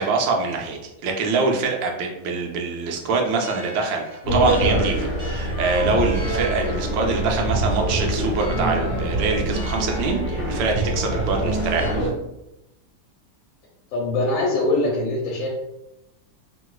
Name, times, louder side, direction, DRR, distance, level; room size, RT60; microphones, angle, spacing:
voice 1, 0.0-12.0, right 4 dB, 75° right, 1 dB, 1.3 m, -24 dB
sound 1, 3.3-11.9, equal, 60° right, 0.6 m, -40 dB
sound 2, 4.2-12.1, right 1 dB, 40° left, 1.3 m, -24 dB
voice 2, 13.9-15.5, left 2 dB, 90° left, -3 dB, 1.5 m, -22 dB
3.2 x 3.0 x 2.3 m, 0.89 s
omnidirectional pair, 2.1 m